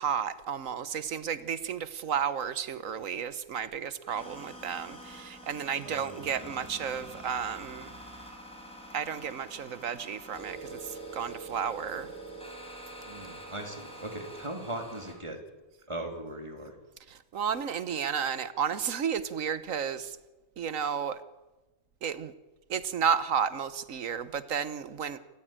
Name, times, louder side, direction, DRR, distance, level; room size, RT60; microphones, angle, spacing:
voice 1, 0.0-7.9 8.9-12.1 17.1-20.2 20.6-21.2 22.0-22.3 22.7-25.2, right 7 dB, 85° right, 14 dB, 1.5 m, -32 dB
sound 1, 4.1-15.1, right 1 dB, 5° left, 4.9 m, -45 dB
voice 2, 5.8-6.3 13.1-15.4 15.9-16.7, right 1 dB, 20° right, 3 dB, 3.2 m, -39 dB
28.0 x 14.5 x 8.9 m, 1.1 s
omnidirectional pair, 1.3 m